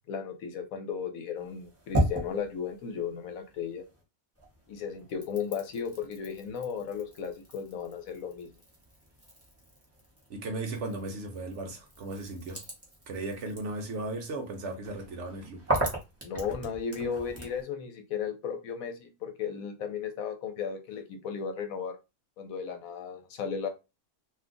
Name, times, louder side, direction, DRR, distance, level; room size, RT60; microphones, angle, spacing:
voice 1, 0.1-3.8 4.7-8.5 16.2-22.0 22.4-23.7, left 6 dB, 70° left, 1.1 m, -35 dB
sound 1, 1.4-4.0 4.4-17.6, right 1 dB, 10° right, 0.7 m, -37 dB
voice 2, 10.3-12.6 13.1-15.6, right 2 dB, 65° right, 0.8 m, -36 dB
2.6 x 2.4 x 3.6 m
omnidirectional pair, 1.5 m